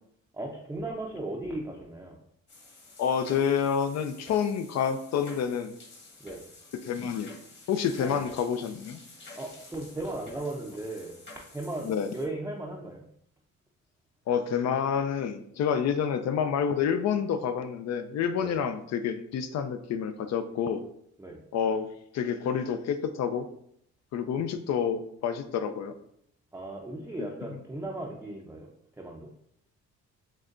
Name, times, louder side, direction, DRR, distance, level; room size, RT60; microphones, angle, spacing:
voice 1, 0.3-2.2 6.2-6.4 8.0-8.2 9.4-13.0 18.4-18.6 21.2-21.4 26.5-28.7 29.0-29.3, right 2 dB, 10° right, -2 dB, 0.5 m, -37 dB
sound 1, 2.5-12.2, left 2 dB, 40° left, 1.3 m, -50 dB
voice 2, 3.0-5.7 6.8-7.4 7.7-9.0 11.8-12.1 14.3-20.8 21.5-21.9 22.1-23.5 24.1-25.9 27.2-27.3, left 7 dB, 60° left, 9 dB, 0.4 m, -28 dB
6.3 x 2.2 x 2.5 m, 0.70 s
cardioid pair, 90°, 30 cm